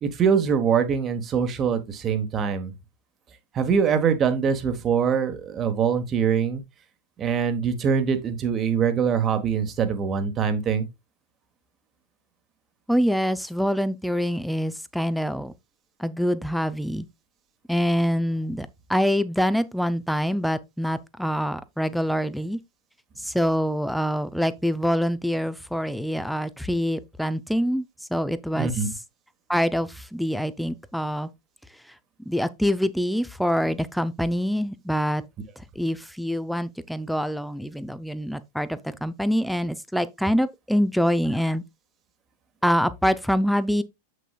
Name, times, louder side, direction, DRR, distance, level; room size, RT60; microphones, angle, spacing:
voice 1, 0.0-2.7 3.5-6.6 7.2-10.9 28.5-28.9, right 6 dB, 25° right, 1.4 m, -23 dB
voice 2, 12.9-15.5 16.0-17.1 17.7-22.6 23.2-27.8 28.1-28.7 29.5-31.3 32.3-35.2 35.6-41.6 42.6-43.8, equal, ahead, 0.6 m, -25 dB
7.6 x 6.5 x 2.4 m
figure-of-eight pair, 90°, 0 cm